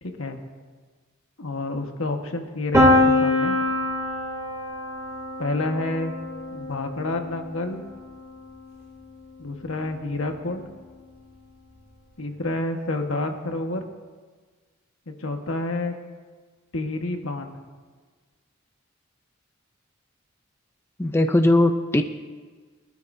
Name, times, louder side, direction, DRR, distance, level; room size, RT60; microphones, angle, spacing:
voice 1, 0.0-0.4 1.4-3.6 5.4-6.2 6.5-7.8 9.4-10.7 12.2-13.9 15.1-15.9 16.7-17.6, left 2 dB, 75° left, 4 dB, 1.5 m, -29 dB
Piano, 2.7-8.5, left 1 dB, 15° right, 3.1 m, -24 dB
voice 2, 21.0-22.0, left 1 dB, 10° left, 6 dB, 0.5 m, -19 dB
22.5 x 12.5 x 2.7 m, 1.5 s
head